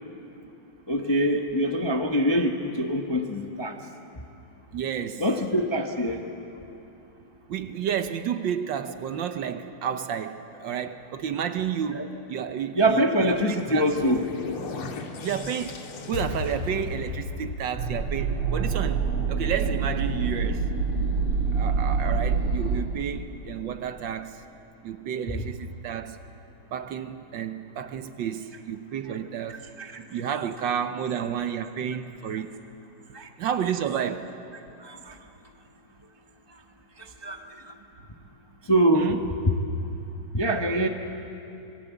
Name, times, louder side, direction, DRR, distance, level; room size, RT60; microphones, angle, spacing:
voice 1, 0.9-3.7 5.2-6.2 11.9-12.1 12.7-14.2 29.8-30.0 33.1-33.3 34.8-35.2 37.2-37.5 38.7-39.2 40.3-40.9, right 1 dB, 20° left, 0.6 m, -24 dB
voice 2, 4.7-5.2 7.5-14.2 15.2-20.6 21.5-24.4 24.8-26.2 26.7-29.7 30.0-32.5 33.4-34.3 38.9-39.2, right 8 dB, 65° right, 1.4 m, -31 dB
sound 1, 13.3-18.6, left 4 dB, 85° left, 2.5 m, -36 dB
sound 2, 17.8-22.8, right 5 dB, 90° right, 3.0 m, -26 dB
25.5 x 21.5 x 8.2 m
omnidirectional pair, 2.3 m